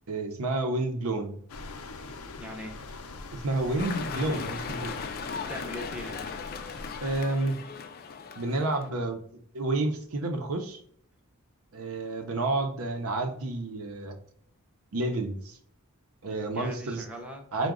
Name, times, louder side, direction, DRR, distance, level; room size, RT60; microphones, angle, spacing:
voice 1, 0.1-1.4 3.4-5.0 7.0-7.6 8.4-9.2 9.5-10.8 11.7-14.2 14.9-15.6 16.2-17.0 17.5-17.7, right 2 dB, 70° right, 4 dB, 0.7 m, -30 dB
sound 1, 1.5-7.2, left 3 dB, 90° left, 0.6 m, -42 dB
voice 2, 2.4-2.8 5.5-6.3 16.4-17.5, equal, 5° right, 0 dB, 0.6 m, -40 dB
sound 2, 3.8-8.9, left 5 dB, 45° left, 0.4 m, -38 dB
4.7 x 2.2 x 3.6 m, 0.63 s
head